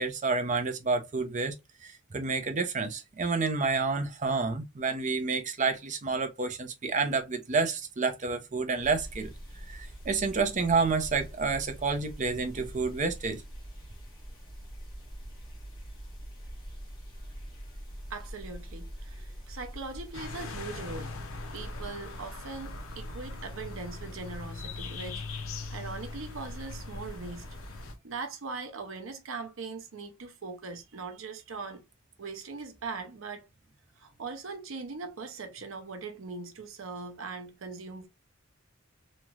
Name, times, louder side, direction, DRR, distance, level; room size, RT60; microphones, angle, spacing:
voice 1, 0.0-1.5 1.8-9.3 9.7-13.4, right 4 dB, 35° right, 0.6 m, -29 dB
sound 1, 8.8-28.0, equal, 20° left, 1.5 m, -44 dB
voice 2, 18.1-21.1 21.5-25.2 25.7-27.5 28.0-31.8 32.2-33.5 34.0-38.1, right 4 dB, 70° right, 0.7 m, -40 dB
sound 2, 20.1-27.9, left 5 dB, 80° left, 0.6 m, -42 dB
3.1 x 2.8 x 2.3 m
head